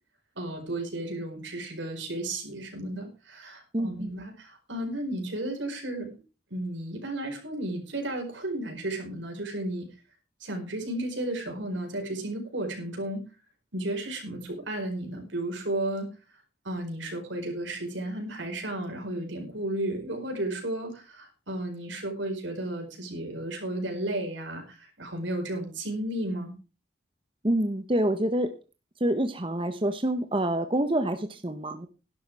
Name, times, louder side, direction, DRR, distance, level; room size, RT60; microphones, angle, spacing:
voice 1, 0.3-6.2 6.5-9.9 10.4-13.2 13.7-16.1 16.6-26.5, right 1 dB, 80° right, 3 dB, 4.8 m, -33 dB
voice 2, 3.7-4.1 27.4-28.5 29.0-31.9, right 1 dB, 25° right, 8 dB, 0.9 m, -27 dB
12.0 x 11.5 x 4.7 m, 0.32 s
head